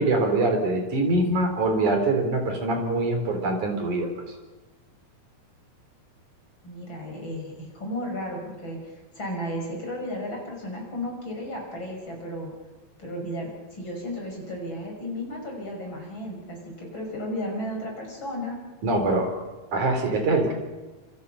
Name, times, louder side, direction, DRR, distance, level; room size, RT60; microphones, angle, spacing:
voice 1, 0.0-4.1 18.8-19.4 19.7-20.5, right 2 dB, 50° right, 4 dB, 5.3 m, -23 dB
voice 2, 6.6-12.5 13.0-18.6, equal, 30° left, 0 dB, 6.4 m, -34 dB
27.5 x 26.5 x 5.7 m, 1.2 s
omnidirectional pair, 4.4 m